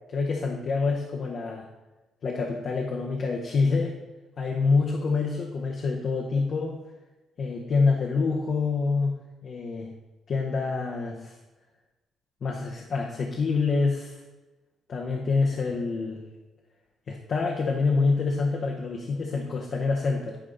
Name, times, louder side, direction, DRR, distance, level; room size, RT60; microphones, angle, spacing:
voice 1, 0.1-1.7 2.2-4.0 4.4-6.8 7.4-9.1 9.4-9.9 10.3-11.4 12.4-14.2 14.9-16.2 17.1-20.4, left 4 dB, 55° left, -1 dB, 0.9 m, -26 dB
10.0 x 3.6 x 3.9 m, 1.1 s
cardioid pair, 90°, 0 cm